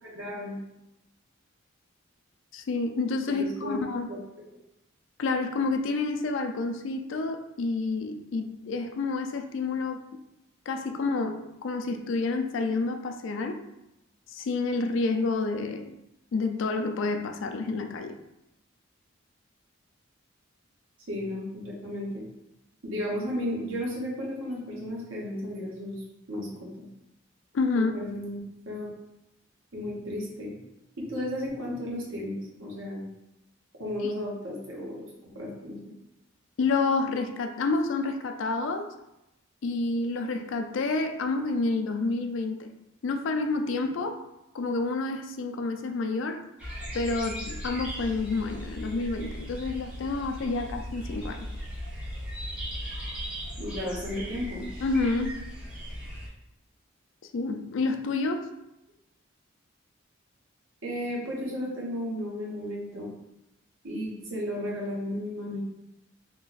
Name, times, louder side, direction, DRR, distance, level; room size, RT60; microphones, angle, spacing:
voice 1, 0.0-0.6 3.3-3.8 4.1-4.2 21.1-22.2 22.8-26.7 27.7-28.4 28.7-28.9 29.7-30.5 31.0-33.0 33.8-35.8 53.6-54.7 60.8-63.1 63.8-65.6, left 1 dB, 70° right, -4 dB, 1.1 m, -34 dB
voice 2, 2.5-4.1 5.2-10.0 10.7-13.6 14.3-15.9 16.3-18.2 27.5-27.9 34.0-34.1 36.6-38.9 39.6-42.7 43.0-44.2 44.5-46.4 46.9-51.5 54.8-55.3 57.3-58.5, left 3 dB, 65° left, 6 dB, 0.4 m, -29 dB
sound 1, 46.6-56.3, equal, 5° right, 0.9 m, -37 dB
2.9 x 2.4 x 3.9 m, 0.90 s
head